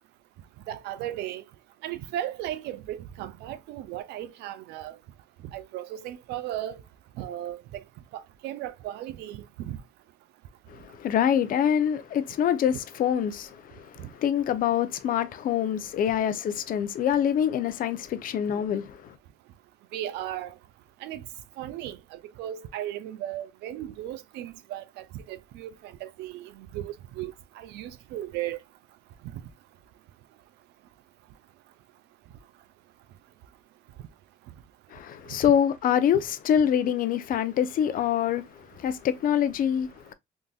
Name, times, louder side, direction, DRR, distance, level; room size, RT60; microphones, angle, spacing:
voice 1, 0.7-1.4 1.8-5.0 5.5-6.8 7.2-7.8 8.1-9.8 14.0-14.1 19.9-20.5 21.0-21.2 21.6-28.6, right 12 dB, 85° right, 0.5 m, -36 dB
voice 2, 10.7-19.2 34.9-40.1, left 9 dB, 55° left, 0.6 m, -25 dB
3.7 x 2.6 x 2.3 m
cardioid pair, 110°, 17 cm